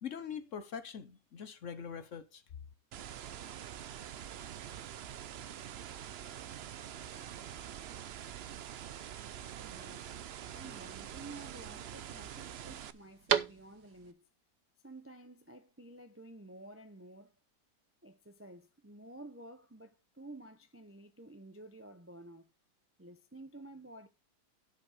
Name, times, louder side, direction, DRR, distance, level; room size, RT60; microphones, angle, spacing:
voice 1, 0.0-2.4, left 7 dB, 55° left, 1.1 m, -43 dB
sound 1, 2.9-12.9, right 10 dB, 85° right, 0.5 m, -45 dB
sound 2, 5.6-14.1, right 9 dB, 70° right, 1.4 m, -42 dB
voice 2, 9.6-10.1 10.5-14.3 14.8-17.3 18.0-22.5 23.0-24.1, right 2 dB, 20° right, 0.4 m, -52 dB
11.5 x 5.4 x 4.9 m
omnidirectional pair, 1.8 m